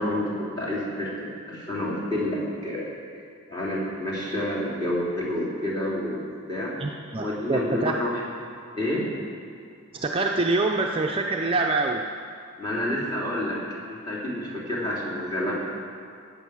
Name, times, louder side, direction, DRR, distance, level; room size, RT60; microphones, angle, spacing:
voice 1, 0.0-2.9 3.5-6.7 7.2-8.2 8.7-9.1 12.6-13.6 13.9-15.6, left 1 dB, 20° left, -6 dB, 3.0 m, -29 dB
voice 2, 6.8-8.0 9.9-12.0, right 3 dB, 25° right, 1 dB, 0.5 m, -25 dB
15.0 x 9.0 x 6.2 m, 2.3 s
head